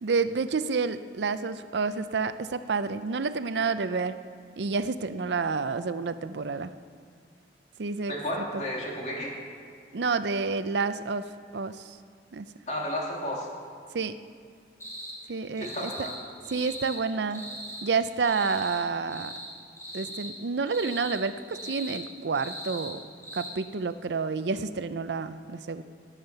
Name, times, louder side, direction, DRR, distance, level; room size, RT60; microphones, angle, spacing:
voice 1, 0.0-4.2 4.6-6.7 7.8-8.6 9.9-11.2 11.5-12.0 12.3-12.5 13.9-14.2 15.3-16.1 16.5-17.5 17.8-19.3 19.9-23.0 23.3-25.8, right 4 dB, 80° right, 12 dB, 0.5 m, -29 dB
voice 2, 8.1-9.3 12.7-13.5 15.6-16.1, left 1 dB, 40° left, -2 dB, 2.6 m, -32 dB
sound 1, 14.8-15.1 15.6-16.2 16.4-17.0 17.3-17.8 18.2-18.8 19.1-19.5 19.8-20.3 20.7-21.2 21.5-22.0 22.3-22.9 23.2-23.5, right 1 dB, 15° left, 3.5 m, -39 dB
18.5 x 7.4 x 6.7 m, 2.2 s
head